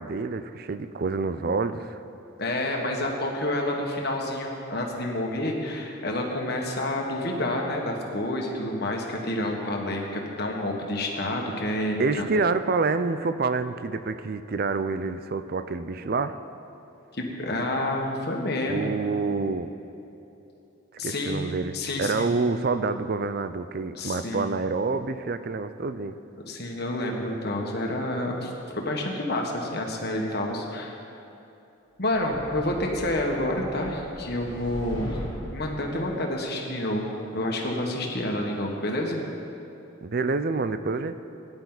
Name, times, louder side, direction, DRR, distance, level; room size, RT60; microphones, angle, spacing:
voice 1, 0.0-2.0 12.0-16.4 18.7-19.7 21.0-26.2 40.0-41.2, right 4 dB, 45° right, 11 dB, 0.4 m, -27 dB
voice 2, 2.4-12.4 17.1-18.9 21.0-21.4 21.7-22.3 23.9-24.5 26.4-31.0 32.0-35.2 35.5-39.2, left 1 dB, 50° left, 0 dB, 1.6 m, -29 dB
sound 1, 32.1-35.8, equal, 15° left, 3.3 m, -39 dB
18.0 x 10.5 x 4.0 m, 2.9 s
head